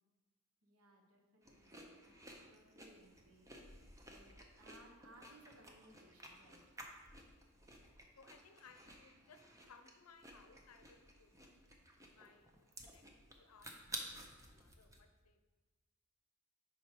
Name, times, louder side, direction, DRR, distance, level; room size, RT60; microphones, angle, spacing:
voice 1, 0.6-3.8 4.0-6.6, right 1 dB, 75° right, 1 dB, 1.1 m, -64 dB
sound 1, 1.4-15.0, right 1 dB, 15° right, 0.6 m, -54 dB
voice 2, 8.2-11.5 12.1-13.0 13.3-15.4, left 5 dB, 85° left, 8 dB, 0.6 m, -64 dB
5.4 x 4.9 x 4.4 m, 1.2 s
head